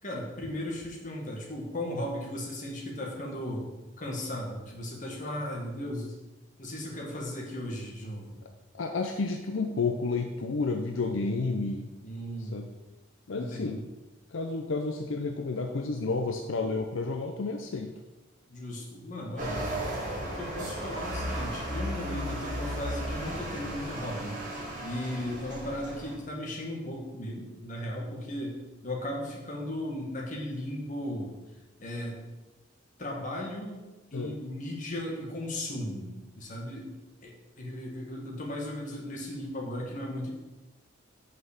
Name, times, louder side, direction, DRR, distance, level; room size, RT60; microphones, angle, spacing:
voice 1, 0.0-3.7 4.0-6.1 6.6-8.4 12.0-12.6 13.3-13.8 18.5-19.7 20.2-24.4 24.8-31.3 31.8-32.2 33.0-33.8 34.1-36.9 37.2-40.3, left 1 dB, 40° left, -1 dB, 1.7 m, -36 dB
voice 2, 8.7-11.9 12.5-12.7 13.3-13.8 14.3-17.9 34.1-34.4, left 3 dB, 70° left, 4 dB, 0.6 m, -31 dB
sound 1, 19.4-26.1, equal, 40° right, 2.0 m, -35 dB
5.8 x 5.5 x 6.5 m, 1.1 s
head